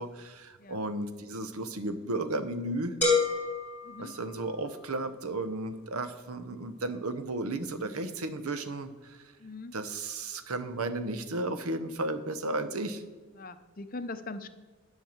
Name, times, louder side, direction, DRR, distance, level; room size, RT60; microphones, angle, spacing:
voice 1, 0.0-3.0 4.0-9.2 9.7-13.0, right 2 dB, 90° right, 10 dB, 0.9 m, -34 dB
sound 1, 3.0-4.9, left 3 dB, 10° left, 2.6 m, -29 dB
voice 2, 9.4-9.7 13.4-14.5, left 3 dB, 40° left, 10 dB, 0.6 m, -41 dB
10.5 x 5.6 x 7.3 m, 1.4 s
head